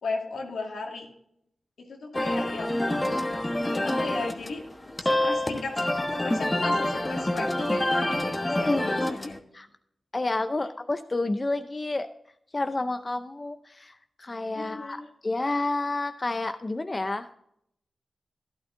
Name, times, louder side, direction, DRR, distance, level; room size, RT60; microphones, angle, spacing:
voice 1, 0.0-1.1 1.9-3.1 3.8-4.6 5.0-5.8 6.1-9.4 10.6-10.7 14.5-15.1, left 3 dB, 85° left, 0 dB, 2.1 m, -35 dB
sound 1, 2.1-9.4, left 1 dB, 20° left, 1.2 m, -27 dB
voice 2, 8.5-9.7 10.1-12.1 12.5-17.3, left 2 dB, 35° left, 9 dB, 0.6 m, -30 dB
12.0 x 11.0 x 2.6 m, 0.73 s
cardioid pair, 45°, 0 cm